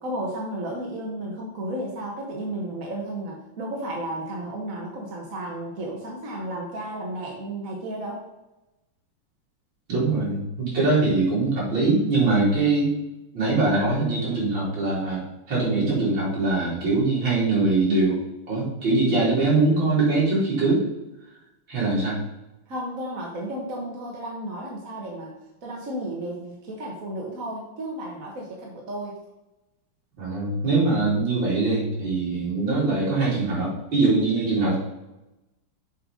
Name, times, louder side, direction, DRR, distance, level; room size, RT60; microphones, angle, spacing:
voice 1, 0.0-8.2 22.7-25.3 25.6-29.2, right 1 dB, 45° right, -2 dB, 1.6 m, -33 dB
voice 2, 9.9-12.9 13.3-18.2 18.5-20.9 21.7-22.2 30.2-34.8, right 3 dB, 60° right, -7 dB, 4.0 m, -22 dB
7.5 x 4.6 x 5.1 m, 0.98 s
omnidirectional pair, 2.4 m